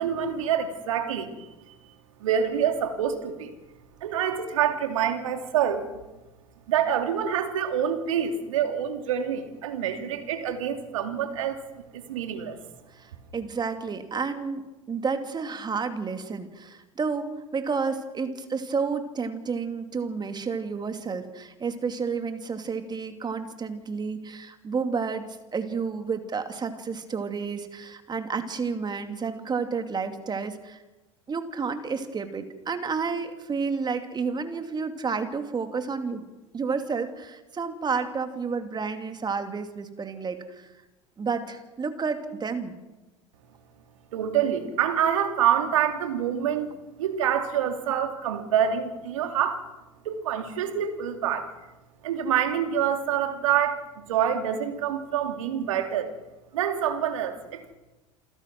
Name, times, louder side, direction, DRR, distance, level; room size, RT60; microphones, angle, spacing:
voice 1, 0.0-1.5 2.2-3.5 4.0-5.8 6.7-12.6 44.1-46.7 47.0-49.7 50.0-51.5 52.0-53.8 54.1-56.1 56.5-57.8, right 9 dB, 70° right, 6 dB, 2.9 m, -26 dB
voice 2, 12.9-14.6 14.9-30.8 31.3-36.2 36.5-40.7 41.2-42.8, right 5 dB, 25° right, 7 dB, 2.8 m, -31 dB
28.0 x 15.5 x 6.2 m, 1.1 s
figure-of-eight pair, 75°, 17 cm